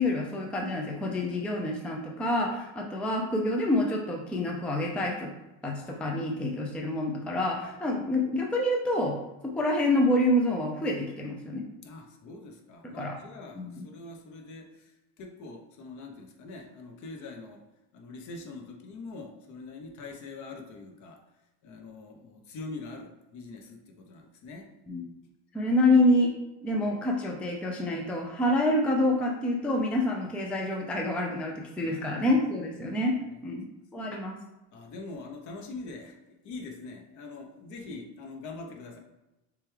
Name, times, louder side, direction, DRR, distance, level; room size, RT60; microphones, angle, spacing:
voice 1, 0.0-5.3 5.6-11.6 13.0-13.2 13.6-13.9 24.9-25.0 25.5-26.3 26.6-33.1 33.4-33.7 33.9-34.4, left 1 dB, 5° left, 0 dB, 0.3 m, -27 dB
voice 2, 11.8-17.6 17.9-21.2 21.6-24.7 31.8-32.2 32.9-33.4 34.7-36.2 36.4-39.0, left 3 dB, 50° left, 3 dB, 0.9 m, -43 dB
6.6 x 2.3 x 3.2 m, 0.98 s
cardioid pair, 140°, 37 cm